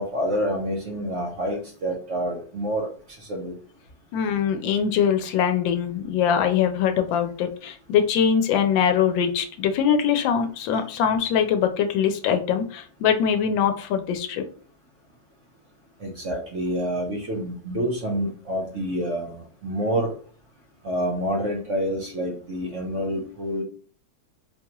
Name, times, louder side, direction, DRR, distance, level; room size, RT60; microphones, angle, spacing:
voice 1, 0.0-2.9 3.3-3.5 16.0-19.4 19.6-20.1 20.8-23.6, equal, 55° right, 0.9 m, -27 dB
voice 2, 4.1-14.4, left 8 dB, 90° left, 1.3 m, -22 dB
4.2 x 2.3 x 2.9 m
omnidirectional pair, 2.0 m